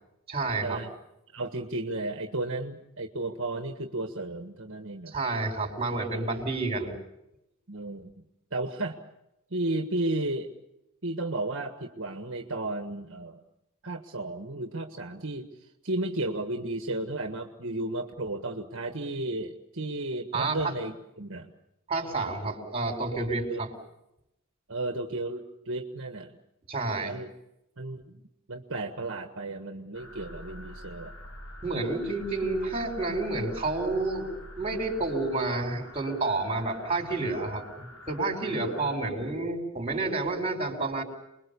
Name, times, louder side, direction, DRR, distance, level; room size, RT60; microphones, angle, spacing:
voice 1, 0.3-0.8 5.1-6.9 20.3-20.7 21.9-23.7 26.7-27.2 31.6-34.3 34.6-41.0, right 3 dB, 25° right, 4 dB, 4.9 m, -30 dB
voice 2, 1.3-5.2 7.7-8.2 8.5-9.0 9.5-10.5 11.0-13.4 13.8-21.5 23.5-23.6 24.7-26.4 27.0-27.3 27.8-28.2 28.5-31.1 38.4-38.7, right 2 dB, 60° right, 5 dB, 1.6 m, -33 dB
sound 1, 29.9-39.0, left 1 dB, 70° left, 7.1 m, -46 dB
29.5 x 22.0 x 7.0 m, 0.87 s
head